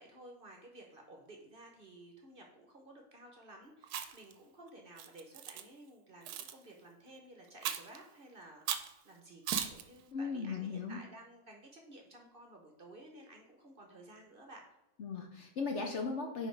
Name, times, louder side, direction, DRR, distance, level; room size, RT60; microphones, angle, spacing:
voice 1, 0.0-14.7, right 1 dB, 40° right, 2 dB, 1.0 m, -54 dB
Chewing mastication, 3.8-4.3 5.0-5.6 6.3-6.5 7.6-8.0 8.7-8.9 9.5-9.8, right 9 dB, 80° right, 1.1 m, -37 dB
voice 2, 10.1-11.0 15.0-16.5, left 4 dB, 55° left, 3 dB, 0.9 m, -37 dB
5.0 x 4.9 x 4.6 m, 0.95 s
omnidirectional pair, 1.7 m